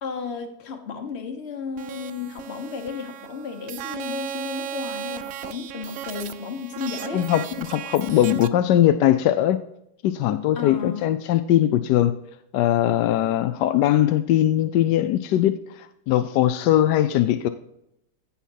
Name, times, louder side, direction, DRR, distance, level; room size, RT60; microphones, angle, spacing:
voice 1, 0.0-7.3 10.5-11.1, left 5 dB, 40° left, 5 dB, 1.4 m, -33 dB
sound 1, 1.8-8.5, right 10 dB, 70° right, 0.8 m, -36 dB
voice 2, 7.1-9.6 10.0-12.1 12.5-17.5, left 12 dB, 80° left, 10 dB, 1.2 m, -20 dB
15.5 x 5.8 x 2.8 m, 0.79 s
omnidirectional pair, 1.8 m